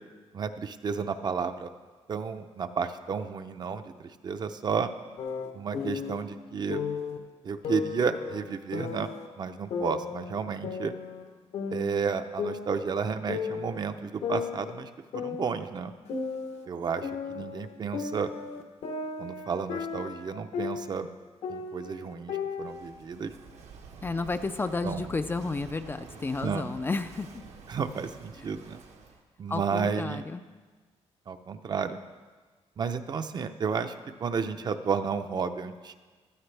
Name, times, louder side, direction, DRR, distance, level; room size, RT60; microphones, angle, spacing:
voice 1, 0.3-1.7 2.1-4.9 5.5-6.8 7.4-9.1 9.4-10.9 11.7-15.9 16.7-18.3 19.2-21.1 21.5-23.3 24.8-25.1 26.4-26.7 27.7-28.8 29.4-30.2 31.3-32.0 32.8-35.9, right 6 dB, 40° right, 9 dB, 0.6 m, -32 dB
sound 1, 5.2-6.2 6.7-7.2 7.6-9.3 9.7-11.3 11.5-13.0 13.3-13.8 14.2-16.7 17.0-21.1 21.4-22.7, left 5 dB, 70° left, 1.0 m, -35 dB
Walk footsteps / Wind / Waves surf, 22.6-29.2, right 5 dB, 75° right, 1.1 m, -49 dB
voice 2, 24.0-27.4 29.5-30.4, left 3 dB, 20° left, 9 dB, 0.3 m, -32 dB
15.5 x 12.5 x 3.3 m, 1.4 s
cardioid pair, 145°, 11 cm